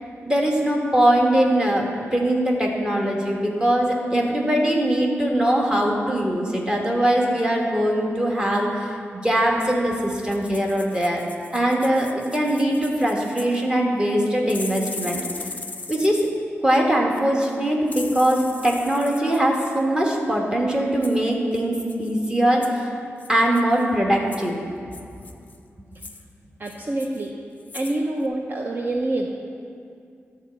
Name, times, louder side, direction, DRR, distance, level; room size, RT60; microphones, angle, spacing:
voice 1, 0.2-8.9 9.2-11.2 11.5-15.2 15.9-16.3 16.6-22.9 23.3-24.6, right 1 dB, 15° right, -1 dB, 1.4 m, -21 dB
sound 1, 10.2-13.6 14.5-16.3 17.9-19.4 21.0-21.2 21.5-21.6 21.9-22.1 22.6-22.8 23.2-23.8 24.3-24.5 24.9-25.6 25.9-26.2 26.6-27.3 27.6-28.0 28.2-28.3, left 3 dB, 35° left, 0.6 m, -38 dB
voice 2, 26.6-27.3 27.7-29.3, right 2 dB, 45° right, 1 dB, 0.6 m, -26 dB
12.0 x 4.2 x 7.6 m, 2.4 s
wide cardioid pair, 105°, 5 cm